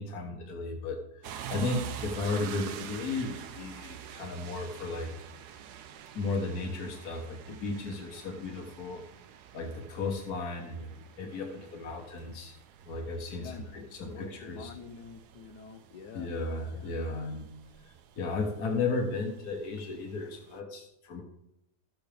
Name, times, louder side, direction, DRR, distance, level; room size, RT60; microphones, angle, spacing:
voice 1, 0.0-5.1 6.1-9.0 9.5-12.5 12.9-14.7 16.1-17.5 18.2-21.2, left 3 dB, 70° left, 3 dB, 1.7 m, -35 dB
sound 1, 1.2-20.6, right 9 dB, 80° right, 1.2 m, -47 dB
voice 2, 13.3-16.3 16.7-17.0, left 5 dB, 90° left, 9 dB, 1.4 m, -47 dB
15.5 x 6.3 x 3.4 m, 0.82 s
omnidirectional pair, 1.7 m